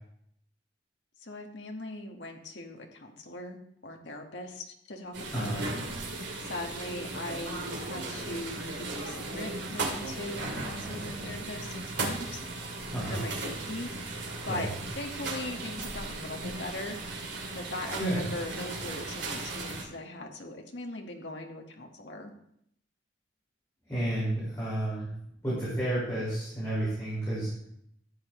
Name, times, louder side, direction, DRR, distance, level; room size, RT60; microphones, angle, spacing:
voice 1, 1.2-3.6 3.8-5.7 6.4-12.4 13.1-13.9 14.4-14.7 15.0-16.9 17.5-22.3, left 2 dB, 70° left, 2 dB, 1.6 m, -40 dB
sound 1, 5.1-19.8, right 2 dB, 70° right, 2.5 m, -36 dB
voice 2, 12.9-13.2 14.5-14.7 18.0-18.3 23.9-25.1 25.4-27.5, right 1 dB, 15° left, -11 dB, 5.1 m, -31 dB
14.0 x 8.8 x 3.2 m, 0.71 s
head